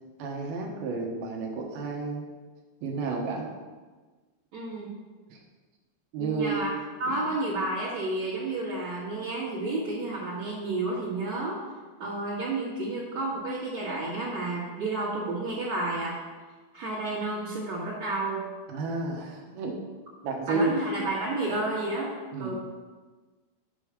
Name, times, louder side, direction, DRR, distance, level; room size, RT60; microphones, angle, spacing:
voice 1, 0.2-2.3 2.8-3.5 5.3-5.4 6.1-6.5 7.1-7.2 18.7-19.8 20.2-20.7 22.3-22.5, right 3 dB, 70° right, 0 dB, 2.8 m, -31 dB
voice 2, 4.5-5.0 6.2-6.7 7.0-11.6 12.0-16.2 16.7-18.5 20.5-22.1 22.4-22.5, right 2 dB, 50° right, -7 dB, 2.5 m, -31 dB
8.2 x 5.4 x 6.4 m, 1.3 s
omnidirectional pair, 4.9 m